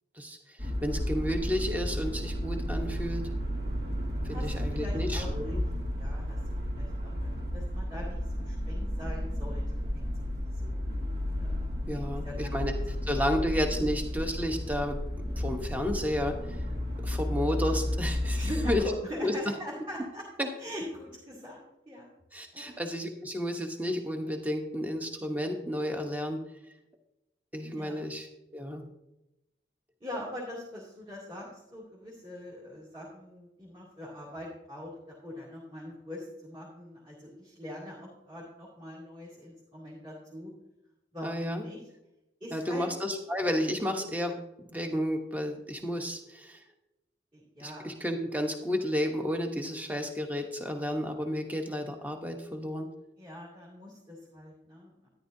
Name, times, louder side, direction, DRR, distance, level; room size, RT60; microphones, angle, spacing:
voice 1, 0.1-3.3 4.2-5.6 11.9-16.6 17.0-18.8 19.2-19.3 20.4-20.5 22.3-26.4 27.5-28.9 41.2-41.6 42.5-44.4 44.7-46.6 47.6-52.9, equal, 10° right, 4 dB, 0.9 m, -32 dB
sound 1, 0.6-18.8, left 1 dB, 65° right, 1.9 m, -32 dB
voice 2, 4.2-5.6 6.0-10.8 11.4-12.6 12.9-13.3 18.3-20.3 20.6-22.1 22.5-22.8 27.6-28.0 30.0-40.5 41.1-41.8 42.4-42.9 47.3-47.8 53.2-55.1, equal, 25° right, -7 dB, 2.6 m, -42 dB
13.0 x 10.5 x 2.7 m, 0.91 s
head